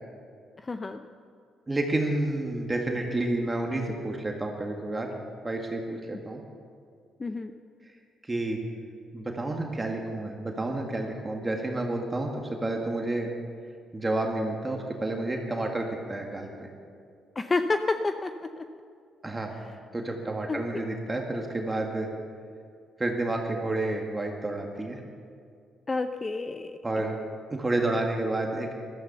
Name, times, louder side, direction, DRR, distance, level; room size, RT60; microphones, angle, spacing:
voice 1, 0.6-1.0 7.2-7.5 17.4-18.7 20.5-20.8 25.9-26.7, left 3 dB, 25° left, 8 dB, 0.6 m, -29 dB
voice 2, 1.7-5.1 5.4-6.4 8.2-8.6 9.1-13.3 13.9-16.7 19.2-19.6 19.9-22.1 23.0-25.0 26.8-27.2 27.5-28.7, right 2 dB, 20° right, 1 dB, 1.8 m, -30 dB
14.0 x 13.0 x 6.9 m, 2.3 s
cardioid pair, 90°, 0 cm